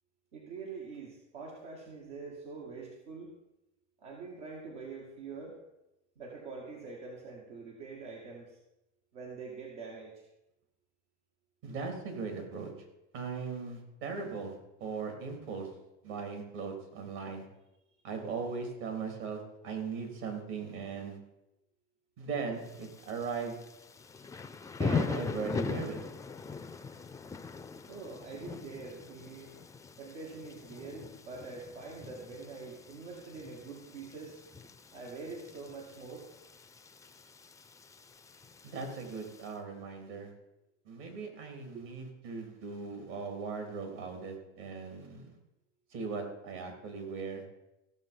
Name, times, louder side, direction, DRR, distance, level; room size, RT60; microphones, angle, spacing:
voice 1, 0.3-3.3 4.0-5.6 6.2-8.6 9.1-10.3 27.9-29.5 30.0-34.4 34.9-36.3 37.1-37.2 41.7-41.8, right 4 dB, 85° right, -3 dB, 2.4 m, -45 dB
voice 2, 11.6-12.7 13.1-14.5 14.8-15.7 16.0-17.4 18.0-21.2 22.2-23.6 24.8-26.0 38.6-40.3 40.9-45.3 45.9-47.4, right 5 dB, 70° right, 4 dB, 3.6 m, -38 dB
Thunder / Rain, 22.6-39.5, left 5 dB, 10° left, 0.4 m, -41 dB
15.5 x 6.9 x 5.4 m, 0.92 s
supercardioid pair, 110°, 34 cm